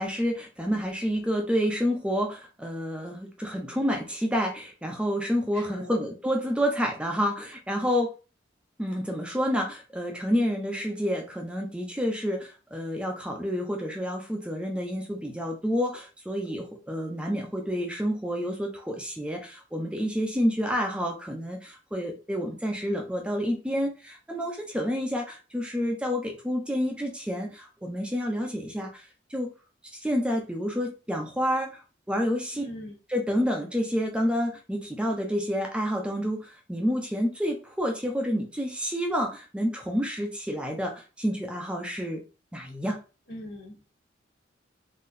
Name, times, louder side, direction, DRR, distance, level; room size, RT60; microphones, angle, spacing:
voice 1, 0.0-8.1 8.8-29.5 29.9-31.8 32.1-32.6 33.1-42.2 42.5-43.0, equal, 5° right, 2 dB, 0.6 m, -29 dB
voice 2, 5.5-6.0 32.5-32.9 43.3-43.9, left 1 dB, 70° left, -1 dB, 1.5 m, -41 dB
3.7 x 2.8 x 2.6 m, 0.32 s
head